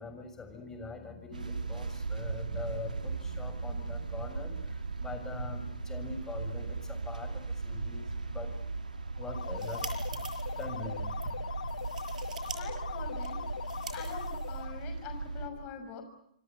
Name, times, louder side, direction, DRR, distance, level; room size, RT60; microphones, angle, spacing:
voice 1, 0.0-4.6 5.0-8.5 9.2-9.9 10.6-11.1, left 4 dB, 10° left, 7 dB, 6.6 m, -43 dB
sound 1, 1.3-15.5, right 4 dB, 90° right, 3.0 m, -37 dB
sound 2, 9.2-14.9, left 7 dB, 75° left, 1.6 m, -41 dB
sound 3, 9.3-10.7 11.1-11.3 11.7-12.6 12.8-14.8, right 6 dB, 65° right, 6.9 m, -46 dB
voice 2, 12.5-13.4 13.9-16.0, left 7 dB, 35° left, 7 dB, 6.3 m, -44 dB
28.0 x 24.0 x 8.1 m, 0.72 s
hypercardioid pair, 125°, 4 cm